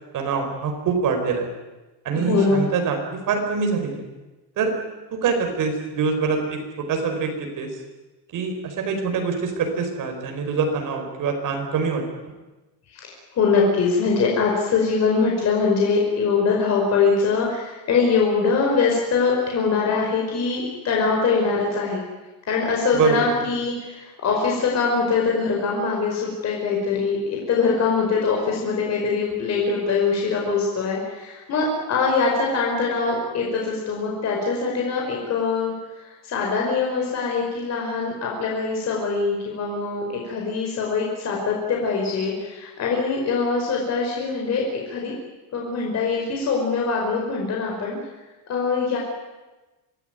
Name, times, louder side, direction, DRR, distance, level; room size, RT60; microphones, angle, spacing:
voice 1, 0.1-1.5 2.0-4.1 4.6-4.8 5.1-7.8 8.3-12.0 22.9-23.3, right 5 dB, 45° right, 4 dB, 5.4 m, -24 dB
voice 2, 2.1-2.6 12.9-22.0 22.5-45.1 45.5-48.0 48.5-49.0, left 4 dB, 35° left, -1 dB, 5.2 m, -23 dB
26.0 x 18.5 x 9.5 m, 1.1 s
cardioid pair, 170°, 44 cm